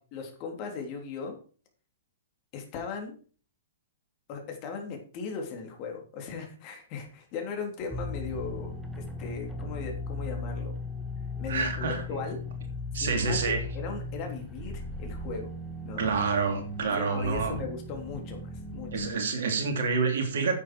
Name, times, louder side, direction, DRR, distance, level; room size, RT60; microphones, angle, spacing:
voice 1, 0.1-1.4 2.5-3.2 4.3-10.8 11.4-12.4 13.0-15.5 15.8-16.0 16.9-19.1, left 5 dB, 35° left, 3 dB, 3.6 m, -38 dB
sound 1, 7.9-19.1, left 2 dB, 5° right, 1.9 m, -37 dB
voice 2, 11.5-12.2 12.9-13.6 16.0-17.6 18.9-20.6, right 4 dB, 60° right, 5 dB, 2.9 m, -28 dB
10.0 x 8.6 x 4.8 m, 0.40 s
figure-of-eight pair, 110°, 0 cm